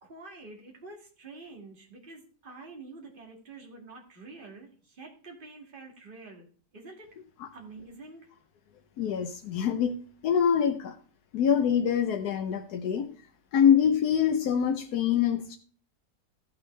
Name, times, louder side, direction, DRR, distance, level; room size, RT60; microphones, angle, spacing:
voice 1, 0.0-6.5 6.7-7.1 7.5-8.2, right 3 dB, 35° right, 0 dB, 2.3 m, -47 dB
voice 2, 9.0-10.0 10.2-10.9 11.3-13.1 13.5-15.6, left 8 dB, 90° left, 5 dB, 1.3 m, -25 dB
14.5 x 6.5 x 3.2 m, 0.43 s
omnidirectional pair, 1.6 m